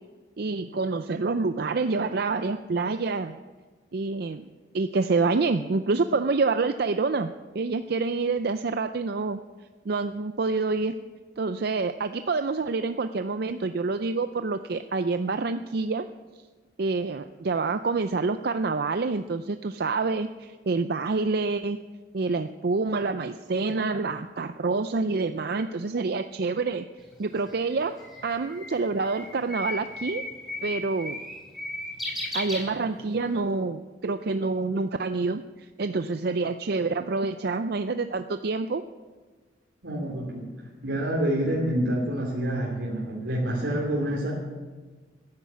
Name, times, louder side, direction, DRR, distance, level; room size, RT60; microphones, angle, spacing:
voice 1, 0.4-3.4 3.9-4.5 4.7-9.4 9.9-10.9 11.4-16.1 16.8-21.8 22.1-26.9 27.2-27.9 28.2-30.2 30.6-31.2 32.3-38.8, right 3 dB, 55° right, 9 dB, 0.5 m, -27 dB
Bird, 27.0-33.3, left 1 dB, ahead, 6.2 m, -36 dB
voice 2, 39.8-40.5 40.8-44.3, right 1 dB, 80° right, -4 dB, 3.1 m, -27 dB
15.0 x 10.5 x 8.3 m, 1.4 s
head